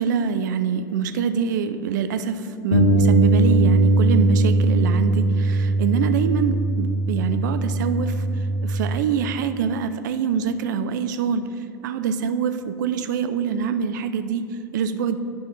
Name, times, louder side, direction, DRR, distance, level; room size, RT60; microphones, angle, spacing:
voice 1, 0.0-8.2 8.6-11.4 11.8-15.2, right 6 dB, 60° right, 10 dB, 0.5 m, -25 dB
Bass guitar, 2.7-9.0, right 2 dB, 55° left, 1.1 m, -20 dB
10.5 x 5.5 x 3.3 m, 2.7 s
figure-of-eight pair, 85°, 11 cm